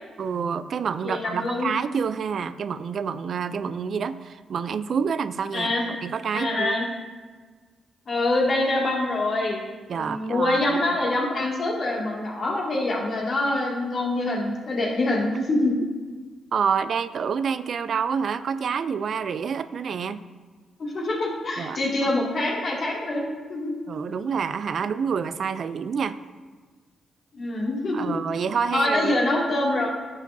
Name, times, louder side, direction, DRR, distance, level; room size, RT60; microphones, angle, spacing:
voice 1, 0.2-5.7 6.0-6.8 9.9-10.8 15.3-15.4 16.5-20.2 21.6-22.1 23.9-26.2 27.9-29.2, right 6 dB, 60° right, 13 dB, 0.4 m, -28 dB
voice 2, 1.0-1.7 5.5-5.8 6.3-6.9 8.1-9.6 9.9-15.7 20.8-23.8 27.3-28.1 28.7-29.9, left 2 dB, 55° left, -3 dB, 2.2 m, -25 dB
10.5 x 6.9 x 2.7 m, 1.4 s
supercardioid pair, 50°, 0 cm